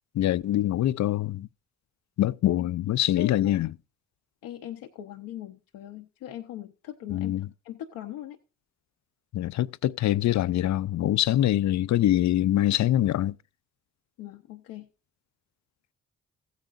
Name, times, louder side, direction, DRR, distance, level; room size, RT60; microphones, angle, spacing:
voice 1, 0.1-1.5 2.2-3.7 7.1-7.5 9.3-13.3, left 13 dB, 55° left, 0.5 m, -24 dB
voice 2, 4.4-8.4 14.2-14.9, left 12 dB, 80° left, 0.8 m, -39 dB
15.5 x 9.2 x 2.6 m
supercardioid pair, 50°, 34 cm